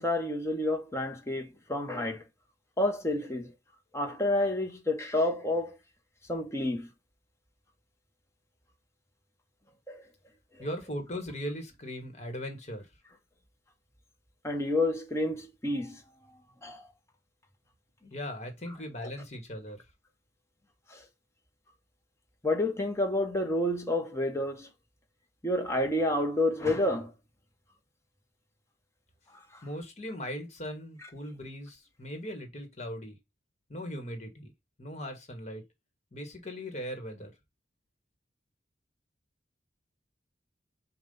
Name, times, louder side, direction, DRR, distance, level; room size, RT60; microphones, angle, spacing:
voice 1, 0.0-2.2 2.8-3.5 3.9-5.8 6.3-6.9 9.9-10.0 14.4-16.0 16.6-16.9 20.9-21.0 22.4-24.7 25.4-27.1 31.0-31.1, left 1 dB, 15° left, 1.1 m, -29 dB
voice 2, 10.6-12.9 18.0-19.8 29.6-33.2 33.7-34.5 34.8-35.6 36.1-37.3, equal, 40° left, 1.5 m, -39 dB
7.1 x 2.4 x 5.4 m
head